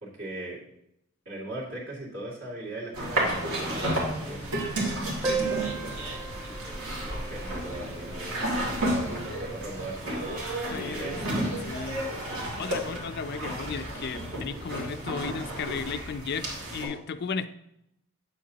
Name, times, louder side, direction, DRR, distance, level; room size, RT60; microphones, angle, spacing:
voice 1, 0.0-0.6 1.3-4.7 7.0-11.3, right 2 dB, 60° right, -5 dB, 2.5 m, -40 dB
sound 1, 2.9-16.8, right 1 dB, 75° right, 2.5 m, -32 dB
Laughter, 3.5-14.6, right 1 dB, 30° right, 1.2 m, -46 dB
voice 2, 5.2-5.8 10.7-11.2 11.7-12.0 12.6-17.6, left 5 dB, 45° left, 12 dB, 0.3 m, -35 dB
Piano, 5.2-10.6 10.9-11.0 11.2-11.3 11.7-11.8 12.5-12.7, right 4 dB, 10° right, 0.5 m, -37 dB
8.9 x 7.5 x 2.8 m, 0.81 s
head